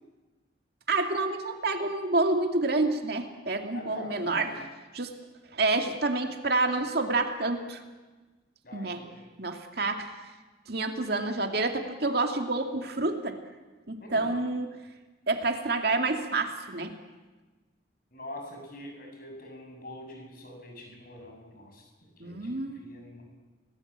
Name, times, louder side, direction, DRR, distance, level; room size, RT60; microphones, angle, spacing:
voice 1, 0.9-4.5 4.9-5.1 5.5-7.8 8.7-9.0 9.4-10.1 10.7-13.4 13.9-14.7 15.3-17.0 22.2-22.9, right 3 dB, 55° right, 4 dB, 2.3 m, -28 dB
voice 2, 3.7-4.6 8.6-9.2 14.0-14.3 18.1-21.9 22.2-23.3, left 1 dB, 45° left, 2 dB, 7.3 m, -44 dB
30.0 x 19.5 x 8.8 m, 1.2 s
head